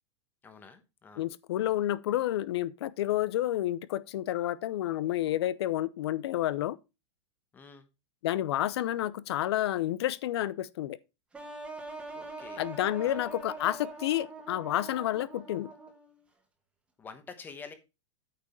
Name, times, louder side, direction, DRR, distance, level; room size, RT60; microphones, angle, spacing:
voice 1, 0.4-1.2 7.5-7.9 12.1-12.7 13.0-13.2 17.0-17.7, left 5 dB, 10° left, 1.1 m, -48 dB
voice 2, 1.2-6.8 8.2-11.0 12.6-15.7, left 13 dB, 60° left, 0.6 m, -30 dB
sound 1, 11.3-16.2, right 3 dB, 5° right, 1.5 m, -43 dB
8.9 x 5.1 x 5.4 m
supercardioid pair, 165°, 15 cm